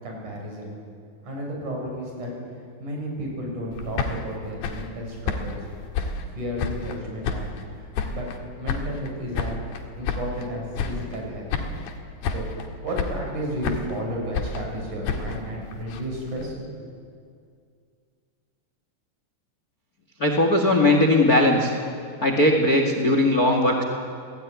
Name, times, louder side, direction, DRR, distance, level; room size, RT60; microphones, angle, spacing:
voice 1, 0.0-0.7 1.2-2.3 2.8-5.6 6.4-8.3 8.6-9.6 10.0-11.5 12.3-16.5 16.8-16.9, equal, 45° right, 0 dB, 8.0 m, -32 dB
sound 1, 3.7-7.0 7.2-8.4 8.7-10.5 10.7-11.2 11.5-12.0 12.2-12.7 13.0-14.0 14.3-16.5, left 5 dB, 75° left, 4.1 m, -30 dB
voice 2, 20.2-21.7 22.2-23.8, left 1 dB, 40° left, 3 dB, 1.3 m, -19 dB
28.0 x 18.5 x 9.6 m, 2.3 s
omnidirectional pair, 5.0 m